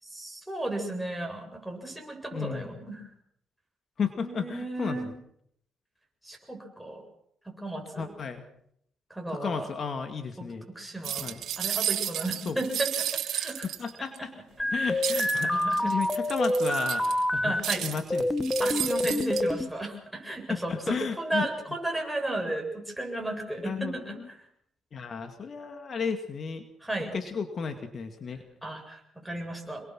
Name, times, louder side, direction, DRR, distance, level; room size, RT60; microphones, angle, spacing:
voice 1, 0.0-3.1 4.2-5.1 6.2-7.0 7.4-8.1 9.1-9.7 10.4-13.7 14.6-15.9 17.4-17.9 18.6-24.5 26.8-27.2 28.6-29.8, right 1 dB, ahead, 1 dB, 7.7 m, -34 dB
voice 2, 2.3-2.7 4.0-5.1 8.0-8.4 9.3-10.7 11.2-11.4 12.5-12.6 13.6-14.3 14.7-18.6 20.7-21.5 23.6-24.3 24.9-26.6 27.1-28.4, left 6 dB, 50° left, 7 dB, 2.3 m, -34 dB
sound 1, 11.0-14.2 15.0-17.2 17.6-19.4, right 11 dB, 75° right, 2.5 m, -32 dB
sound 2, 14.6-17.6 18.1-19.7, left 1 dB, 15° left, 1.5 m, -27 dB
27.0 x 22.5 x 6.3 m, 0.71 s
cardioid pair, 90°, 0 cm